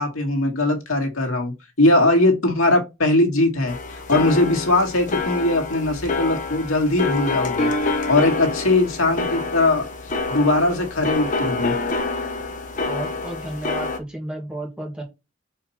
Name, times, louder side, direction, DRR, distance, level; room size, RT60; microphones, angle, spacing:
voice 1, 0.0-7.7 8.1-9.9 10.3-11.7, left 2 dB, 85° left, 1.9 m, -20 dB
sound 1, 3.7-14.0, left 3 dB, 40° left, 1.0 m, -27 dB
voice 2, 12.8-15.0, right 1 dB, 5° right, 2.2 m, -32 dB
5.0 x 4.1 x 5.7 m
head